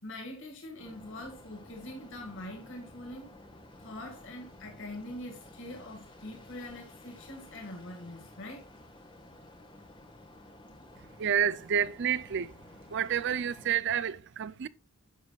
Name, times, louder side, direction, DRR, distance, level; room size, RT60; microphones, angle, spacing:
voice 1, 0.0-3.3 3.8-8.7, left 1 dB, 60° left, 1.9 m, -43 dB
sound 1, 0.8-13.7, left 1 dB, 20° left, 1.4 m, -53 dB
voice 2, 11.2-12.5 12.9-14.7, right 8 dB, 55° right, 0.4 m, -29 dB
10.0 x 7.4 x 2.3 m
head